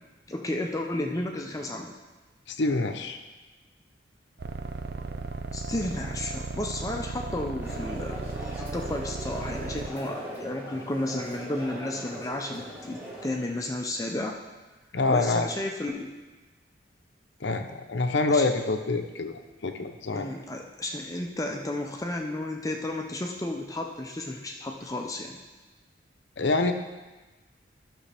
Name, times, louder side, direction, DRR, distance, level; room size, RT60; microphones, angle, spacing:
voice 1, 0.3-1.9 5.5-14.4 15.1-16.1 18.3-18.5 20.1-25.4, left 1 dB, 20° left, 2 dB, 0.5 m, -33 dB
voice 2, 2.5-3.2 14.9-15.5 17.4-20.3 26.4-26.7, left 3 dB, 70° left, 6 dB, 0.7 m, -26 dB
sound 1, 4.4-9.9, right 3 dB, 55° right, 0.4 m, -35 dB
sound 2, 7.6-13.3, equal, 10° right, 1.3 m, -40 dB
13.5 x 6.1 x 3.4 m, 1.2 s
head